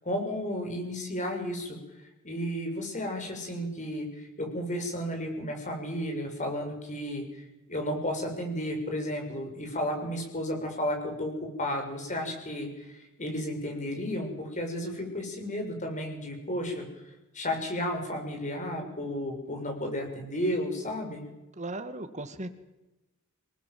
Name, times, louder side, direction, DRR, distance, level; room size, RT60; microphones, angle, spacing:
voice 1, 0.0-1.8 2.2-7.2 7.7-16.9 17.3-21.2, equal, 35° left, 3 dB, 6.6 m, -33 dB
voice 2, 21.6-22.5, right 2 dB, 30° right, 9 dB, 2.2 m, -37 dB
27.0 x 20.0 x 7.9 m, 1.0 s
head